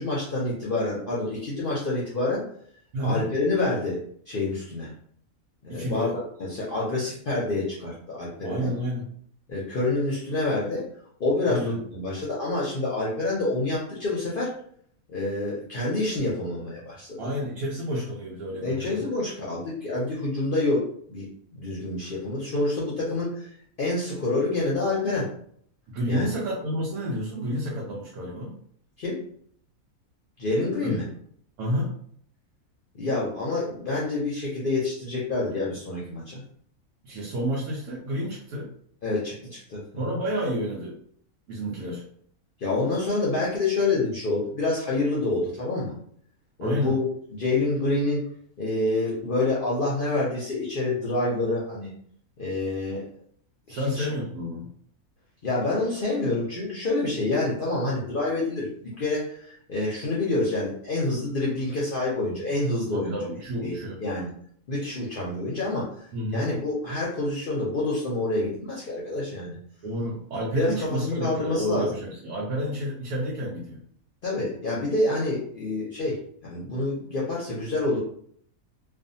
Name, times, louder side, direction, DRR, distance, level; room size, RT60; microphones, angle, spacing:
voice 1, 0.0-2.4 3.0-4.0 4.3-4.9 5.6-8.7 9.5-10.9 11.2-14.5 15.1-17.3 18.6-23.5 23.8-25.3 26.1-26.3 29.0-29.2 30.4-31.1 32.9-36.4 39.0-40.0 42.6-45.9 46.6-48.2 48.6-51.9 52.4-53.1 53.7-54.1 55.4-63.2 63.6-63.8 64.0-64.3 64.7-69.6 70.5-72.0 74.2-78.0, left 2 dB, 55° left, -5 dB, 0.6 m, -27 dB
voice 2, 2.9-3.3 5.7-6.1 8.4-9.1 11.5-11.8 17.2-19.0 25.9-28.6 30.8-31.0 31.6-31.9 37.0-38.7 40.0-41.0 41.5-42.0 46.6-47.0 53.7-54.7 62.9-64.0 66.1-66.5 69.8-73.8, equal, 90° right, -4 dB, 1.1 m, -30 dB
2.6 x 2.3 x 2.6 m, 0.63 s
omnidirectional pair, 1.5 m